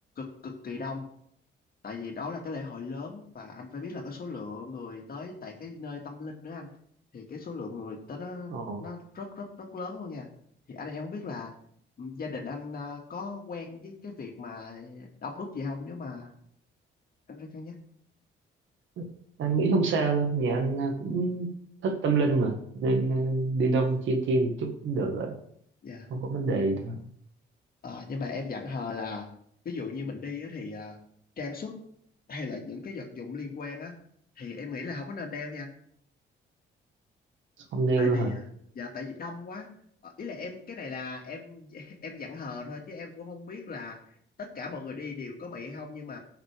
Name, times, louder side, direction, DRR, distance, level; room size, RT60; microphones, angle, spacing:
voice 1, 0.2-1.1 1.8-6.7 7.1-8.5 8.8-10.3 10.7-11.5 12.0-16.3 17.3-17.7 25.8-26.1 27.8-29.3 29.6-31.0 31.4-31.8 32.3-33.9 34.4-35.7 38.0-38.5 38.7-39.7 40.0-44.0 44.4-46.2, left 4 dB, 50° left, 2 dB, 2.2 m, -38 dB
voice 2, 8.5-8.8 19.0-19.1 19.4-21.5 21.8-25.3 26.1-26.9 37.7-38.3, right 3 dB, 75° right, 4 dB, 1.8 m, -26 dB
16.0 x 6.0 x 3.6 m, 0.67 s
cardioid pair, 90°, 20 cm